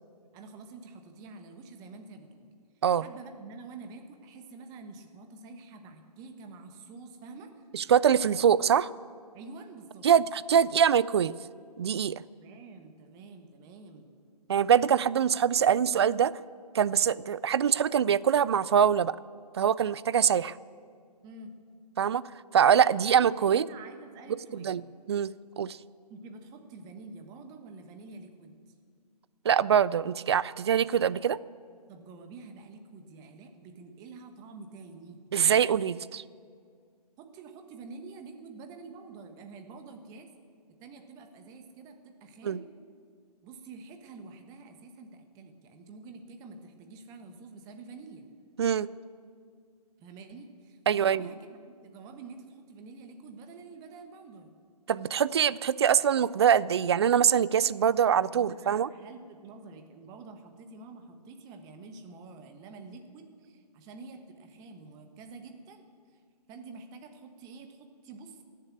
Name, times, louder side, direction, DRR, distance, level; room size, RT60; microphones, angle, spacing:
voice 1, 0.3-2.5 3.0-7.7 9.3-10.1 12.3-14.1 21.2-21.5 22.9-24.9 26.1-28.6 31.9-35.3 37.2-40.3 40.8-42.7 43.4-48.3 50.0-54.5 58.3-66.2 66.5-68.4, right 4 dB, 20° right, 6 dB, 1.2 m, -48 dB
voice 2, 7.7-8.9 10.0-11.3 11.8-12.2 14.5-16.3 16.7-19.1 19.5-20.6 22.0-22.2 22.5-23.7 24.5-24.8 25.1-25.3 25.6-25.8 29.4-31.4 35.3-36.2 42.4-42.6 48.6-48.9 50.9-51.3 54.9-58.9, right 8 dB, 40° right, 19 dB, 0.4 m, -24 dB
17.5 x 7.5 x 8.3 m, 2.1 s
hypercardioid pair, 145°, 21 cm